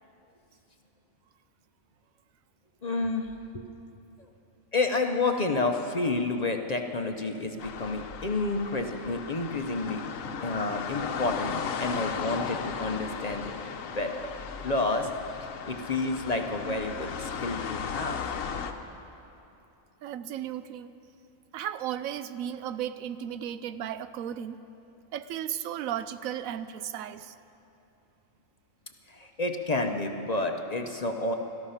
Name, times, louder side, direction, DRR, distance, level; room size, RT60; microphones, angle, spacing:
voice 1, 2.8-3.3 3.5-3.6 4.7-10.0 10.4-13.6 13.9-14.3 14.6-15.1 15.7-18.2 29.1-31.4, left 3 dB, 40° left, 4 dB, 0.7 m, -30 dB
sound 1, 7.6-18.7, left 6 dB, 75° left, 1.2 m, -36 dB
voice 2, 20.0-20.9 21.5-24.6 25.1-27.3, right 10 dB, 85° right, 13 dB, 1.0 m, -35 dB
18.0 x 13.0 x 5.7 m, 2.9 s
omnidirectional pair, 1.4 m